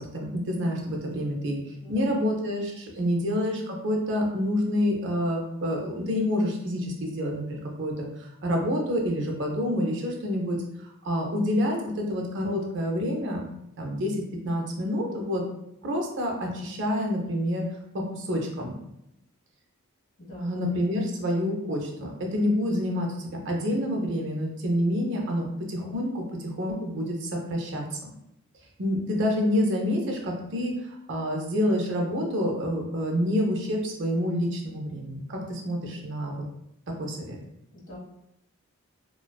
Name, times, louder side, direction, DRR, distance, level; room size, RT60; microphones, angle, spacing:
voice 1, 0.0-13.4 13.8-15.4 15.8-17.6 18.1-18.7 20.4-28.0 28.8-36.3 37.0-37.4, equal, 55° right, 0 dB, 0.5 m, -28 dB
voice 2, 1.8-2.2 20.2-20.6 37.7-38.0, left 2 dB, 60° left, -6 dB, 1.1 m, -43 dB
2.4 x 2.2 x 2.2 m, 0.81 s
head